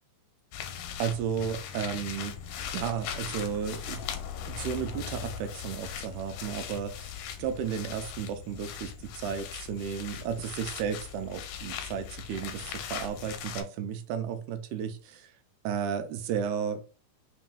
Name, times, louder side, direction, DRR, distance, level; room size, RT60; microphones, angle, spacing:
sound 1, 0.5-13.6, left 8 dB, 85° left, 2.1 m, -39 dB
voice 1, 1.0-2.4 2.7-4.0 4.4-15.3 15.6-16.8, right 8 dB, 85° right, 7 dB, 2.0 m, -33 dB
5.6 x 3.0 x 2.2 m, 0.37 s
omnidirectional pair, 3.5 m